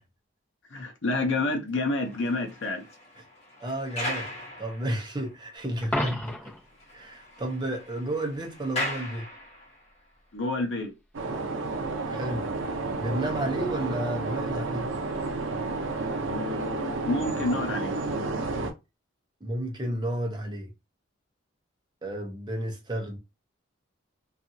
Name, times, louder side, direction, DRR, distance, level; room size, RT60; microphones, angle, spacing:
voice 1, 0.7-2.9 10.3-10.9 16.3-18.0, left 2 dB, 70° left, 0.6 m, -29 dB
sound 1, 1.8-5.3 5.8-5.9 6.3-6.4 6.7-9.9, left 1 dB, 30° left, 1.2 m, -38 dB
voice 2, 3.6-6.5 6.9-9.3 12.1-12.5 12.9-14.9 19.4-20.7 22.0-23.2, right 1 dB, 25° right, 0.7 m, -32 dB
Coin (dropping), 5.8-6.7 12.8-12.9, left 1 dB, 10° left, 0.8 m, -31 dB
sound 2, 11.1-18.7, right 3 dB, 85° right, 0.6 m, -31 dB
2.6 x 2.4 x 2.7 m
head